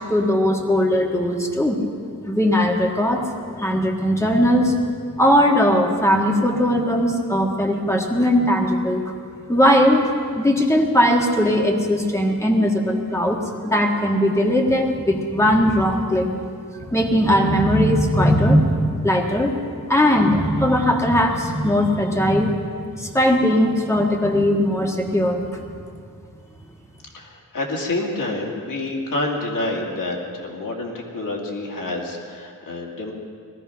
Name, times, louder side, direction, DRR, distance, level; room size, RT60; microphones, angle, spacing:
voice 1, 0.1-1.8 2.3-3.3 3.6-4.7 5.2-9.0 9.5-13.4 13.6-16.3 16.9-19.5 19.9-22.6 23.0-25.4, equal, 10° left, 1 dB, 1.7 m, -19 dB
voice 2, 27.1-33.1, left 2 dB, 70° left, 0 dB, 2.6 m, -28 dB
19.0 x 13.5 x 5.8 m, 2.2 s
wide cardioid pair, 135°, 34 cm